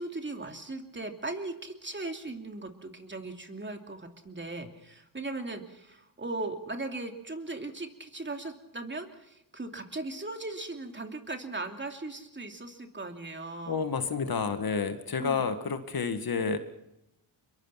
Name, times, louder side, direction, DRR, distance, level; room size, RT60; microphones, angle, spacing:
voice 1, 0.0-13.9 15.2-15.5, right 2 dB, 25° right, 5 dB, 2.9 m, -38 dB
voice 2, 13.7-16.6, left 5 dB, 45° left, 9 dB, 1.9 m, -30 dB
23.5 x 22.5 x 5.9 m, 0.84 s
supercardioid pair, 60°, 48 cm